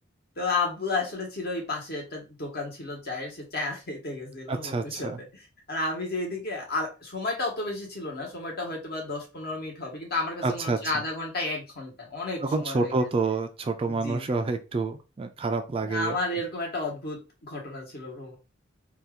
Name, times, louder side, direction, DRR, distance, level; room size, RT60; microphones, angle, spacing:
voice 1, 0.4-5.4 5.7-13.1 13.8-14.2 15.8-18.4, left 3 dB, 55° left, 0 dB, 1.2 m, -32 dB
voice 2, 4.5-5.2 10.4-10.8 12.4-16.2, right 3 dB, 30° right, 7 dB, 0.3 m, -28 dB
2.8 x 2.3 x 3.5 m, 0.29 s
head